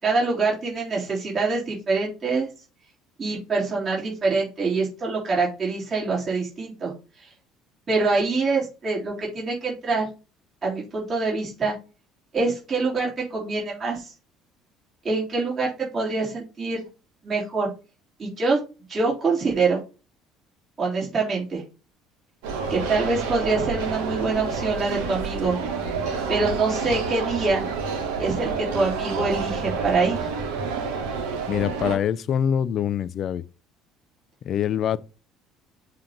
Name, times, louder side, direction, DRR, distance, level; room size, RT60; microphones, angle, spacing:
voice 1, 0.0-2.5 3.2-7.3 7.9-10.1 10.6-11.8 12.3-14.1 15.0-16.8 17.2-17.7 18.2-18.6 18.9-19.8 20.8-21.6 22.7-25.6 26.3-27.7 28.2-30.3, right 3 dB, 35° right, 3.2 m, -25 dB
sound 1, 22.4-32.0, right 5 dB, 75° right, 1.2 m, -29 dB
voice 2, 31.5-33.4 34.4-35.0, left 9 dB, 50° left, 0.4 m, -24 dB
7.6 x 2.8 x 5.1 m
hypercardioid pair, 65°, 0 cm